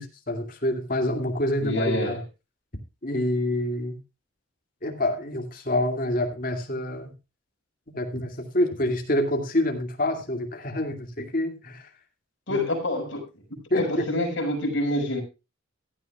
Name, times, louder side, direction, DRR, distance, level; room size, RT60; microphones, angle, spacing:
voice 1, 0.0-2.2 3.0-4.0 4.8-7.1 7.9-11.9 12.5-12.6 13.7-14.1, left 1 dB, 40° left, 2.6 m, -27 dB
voice 2, 1.6-2.2 12.5-13.2 13.7-15.2, left 1 dB, 65° left, 5.9 m, -26 dB
16.5 x 12.5 x 2.4 m
head